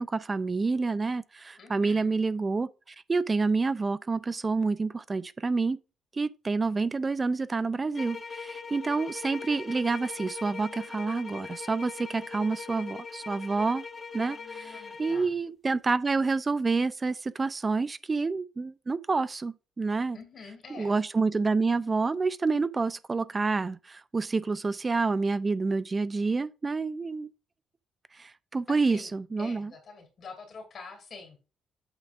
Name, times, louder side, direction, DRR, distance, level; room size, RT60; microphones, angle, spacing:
voice 1, 0.0-5.8 6.1-13.8 14.1-20.2 20.8-27.3 28.1-29.7, right 4 dB, 30° right, 0.4 m, -28 dB
voice 2, 1.6-2.1 14.2-15.3 20.1-21.0 28.7-29.1 29.4-31.4, left 4 dB, 55° left, 2.4 m, -46 dB
sound 1, 8.0-15.3, left 5 dB, 35° left, 0.9 m, -41 dB
8.1 x 6.5 x 2.5 m
cardioid pair, 90°, 0 cm